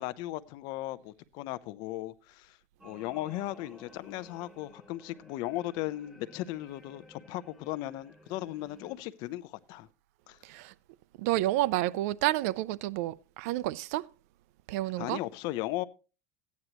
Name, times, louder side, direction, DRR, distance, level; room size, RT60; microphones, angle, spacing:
voice 1, 0.0-2.6 2.8-9.9 10.3-10.4 15.0-15.8, left 16 dB, 55° left, 0.7 m, -37 dB
sound 1, 2.8-9.0, equal, 5° right, 3.0 m, -55 dB
voice 2, 10.4-10.7 11.2-14.1 14.7-15.2, right 16 dB, 65° right, 0.5 m, -30 dB
14.0 x 9.5 x 3.0 m
supercardioid pair, 130°, 9 cm